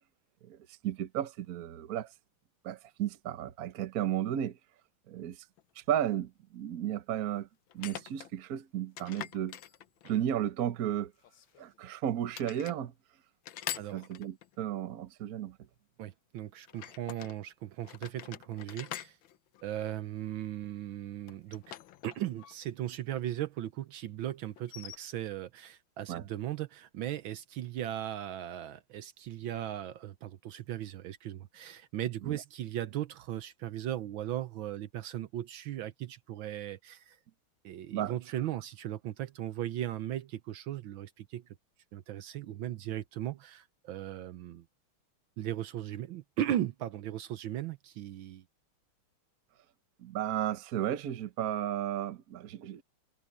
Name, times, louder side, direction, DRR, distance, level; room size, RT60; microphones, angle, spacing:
voice 1, 0.4-2.1 2.6-4.6 5.1-5.4 5.8-7.5 7.7-9.6 10.0-11.1 11.6-12.9 13.9-15.6 26.1-26.2 32.2-32.4 37.9-38.1 50.0-52.8, right 11 dB, 55° right, 1.2 m, -34 dB
sound 1, 5.6-5.7 7.7-8.3 9.0-10.3 11.2-11.9 12.3-12.8 13.4-14.6 16.7-17.4 17.8-20.3 21.3-22.6 22.8-22.9 24.6-25.0, left 11 dB, 70° left, 1.6 m, -44 dB
voice 2, 16.0-19.2 19.6-21.7 22.0-37.2 37.6-41.5 41.9-44.6 45.4-48.4, right 12 dB, 70° right, 1.5 m, -37 dB
omnidirectional pair, 2.3 m